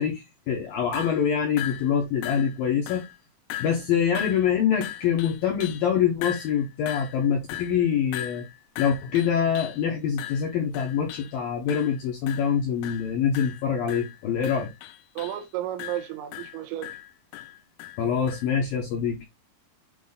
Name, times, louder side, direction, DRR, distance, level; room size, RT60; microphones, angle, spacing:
voice 1, 0.0-3.0 3.6-8.4 8.8-14.7 18.0-19.3, left 8 dB, 75° left, 2.1 m, -25 dB
sound 1, 0.9-1.2 1.6-2.0 2.2-2.6 2.9-3.2 3.5-3.9 4.2-5.9 6.2-9.8 10.2-11.4 11.7-12.0 12.3-12.6 12.8-13.1 13.4-15.4 15.8-18.5, left 13 dB, 90° left, 3.3 m, -38 dB
voice 2, 15.2-17.0, right 12 dB, 80° right, 3.1 m, -33 dB
8.2 x 3.2 x 4.0 m
omnidirectional pair, 5.6 m